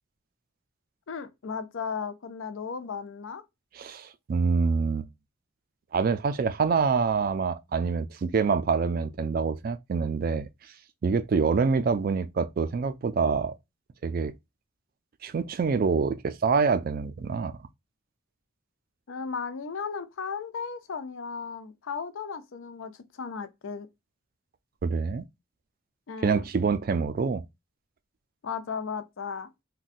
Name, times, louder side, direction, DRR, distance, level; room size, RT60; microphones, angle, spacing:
voice 1, 1.1-3.4 19.1-23.9 26.1-26.4 28.4-29.5, left 5 dB, 80° left, 0.5 m, -35 dB
voice 2, 3.8-5.1 5.9-10.5 11.0-13.5 14.0-14.3 15.2-17.5 24.8-25.2 26.2-27.4, right 5 dB, 45° right, 0.3 m, -26 dB
3.9 x 2.2 x 2.5 m
head